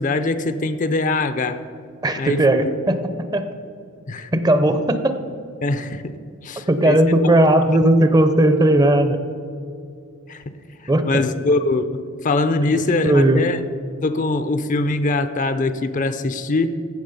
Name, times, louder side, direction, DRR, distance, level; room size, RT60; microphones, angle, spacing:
voice 1, 0.0-1.6 2.1-2.5 4.1-4.3 5.6-6.0 6.4-7.0 10.3-10.4 11.0-13.6 14.0-16.7, left 2 dB, 35° left, 11 dB, 0.5 m, -22 dB
voice 2, 2.0-3.0 3.3-3.4 4.3-5.2 6.7-9.2 10.9-11.2 12.7-13.4, right 1 dB, 20° right, 10 dB, 0.6 m, -17 dB
15.5 x 6.0 x 5.3 m, 2.4 s
head